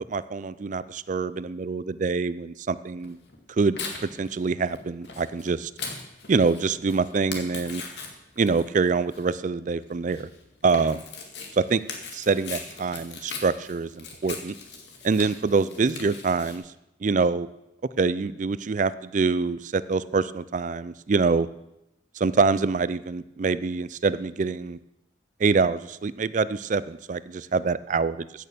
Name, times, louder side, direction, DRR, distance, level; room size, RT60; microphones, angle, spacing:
voice 1, 0.1-3.2 3.5-3.8 4.2-5.7 6.3-7.8 8.4-10.3 10.6-11.0 11.6-11.8 12.1-14.6 15.0-16.6 17.0-17.5 18.0-21.5 22.2-24.8 25.4-28.5, right 4 dB, 40° right, 16 dB, 0.4 m, -25 dB
Tearing, 3.0-16.6, left 4 dB, 60° left, 2.1 m, -40 dB
15.0 x 6.6 x 6.8 m, 0.88 s
head